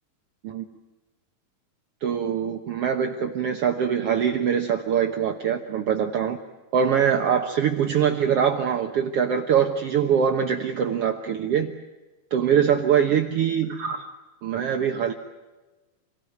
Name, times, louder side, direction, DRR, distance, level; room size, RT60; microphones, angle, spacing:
voice 1, 2.0-6.4 6.7-11.7 12.3-14.1 14.4-15.1, right 8 dB, 65° right, 4 dB, 1.4 m, -23 dB
27.5 x 18.5 x 9.4 m, 1.2 s
omnidirectional pair, 4.4 m